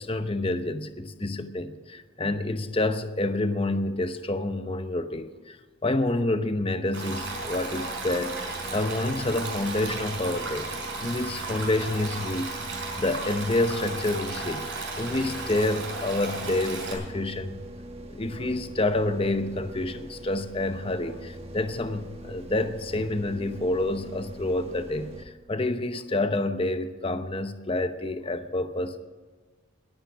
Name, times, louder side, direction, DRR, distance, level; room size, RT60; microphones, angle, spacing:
voice 1, 0.0-5.6 5.8-8.4 8.7-17.6 18.1-29.0, left 2 dB, 25° left, 0.8 m, -28 dB
Stream, 6.9-16.9, right 3 dB, 65° right, 5.0 m, -35 dB
sound 1, 7.1-25.3, right 1 dB, 30° right, 1.2 m, -42 dB
21.5 x 9.0 x 6.2 m
head